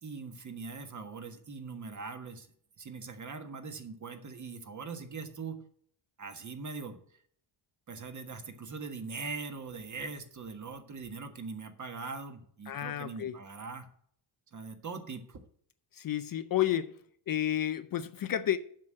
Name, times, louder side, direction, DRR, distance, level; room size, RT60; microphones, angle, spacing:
voice 1, 0.0-2.5 2.8-5.6 6.2-7.0 7.9-13.9 14.5-15.4, right 4 dB, 35° right, 1.5 m, -41 dB
voice 2, 12.7-13.4 15.9-16.9 17.3-18.6, left 11 dB, 45° left, 0.6 m, -31 dB
7.5 x 6.3 x 7.6 m
cardioid pair, 110°, 50 cm